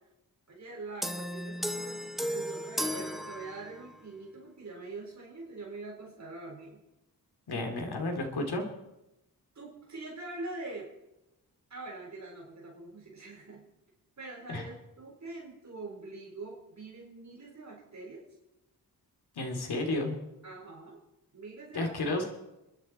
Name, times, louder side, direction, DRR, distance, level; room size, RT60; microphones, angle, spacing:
voice 1, 0.5-6.8 9.5-10.9 11.7-13.6 14.2-18.3 20.4-21.0 21.3-21.9, right 3 dB, 45° right, -3 dB, 4.3 m, -44 dB
sound 1, 1.0-4.0, equal, ahead, 0.8 m, -35 dB
voice 2, 7.5-8.6 14.5-14.7 19.4-20.2 21.7-22.2, left 2 dB, 80° left, 2 dB, 3.0 m, -32 dB
29.5 x 11.0 x 4.4 m, 0.94 s
wide cardioid pair, 130°, 38 cm